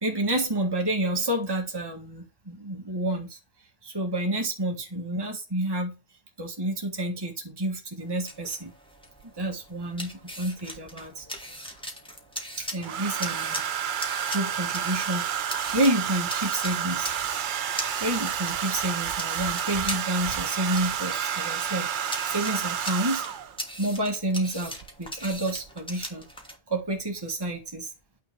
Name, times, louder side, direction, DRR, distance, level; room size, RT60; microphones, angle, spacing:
voice 1, 0.0-3.4 3.8-5.9 6.4-8.7 9.2-10.1 10.4-11.6 12.6-13.6 14.3-17.1 18.0-23.3 23.8-26.3 26.7-27.9, right 1 dB, 20° right, 1 dB, 1.8 m, -29 dB
sound 1, 8.0-26.6, equal, 5° left, 1.9 m, -40 dB
Domestic sounds home sounds, 9.2-9.3 10.7-11.4 12.8-23.6 24.8-25.1 25.3-25.7, right 9 dB, 55° right, 0.7 m, -30 dB
9.3 x 4.0 x 6.8 m, 0.28 s
omnidirectional pair, 1.1 m